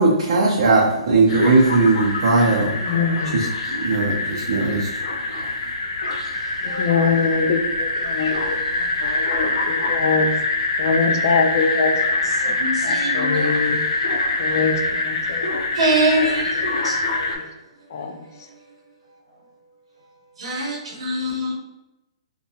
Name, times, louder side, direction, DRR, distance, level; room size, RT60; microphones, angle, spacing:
voice 1, 0.0-2.7 3.3-3.5 3.8-4.9, right 3 dB, 55° right, -3 dB, 0.5 m, -18 dB
sound 1, 1.3-17.4, left 2 dB, 80° left, 0.7 m, -24 dB
voice 2, 2.8-3.4 6.8-8.6 9.0-10.3 10.8-12.0 12.5-12.6 12.8-13.8 14.4-15.6 16.2-16.3 17.2-17.3 17.9-18.1, left 5 dB, 40° left, 6 dB, 0.3 m, -23 dB
voice 3, 12.4-13.6 15.7-16.6 16.8-16.9 20.4-21.5, right 1 dB, 80° right, -3 dB, 0.8 m, -23 dB
2.7 x 2.2 x 2.7 m, 0.92 s
hypercardioid pair, 170°, 3 cm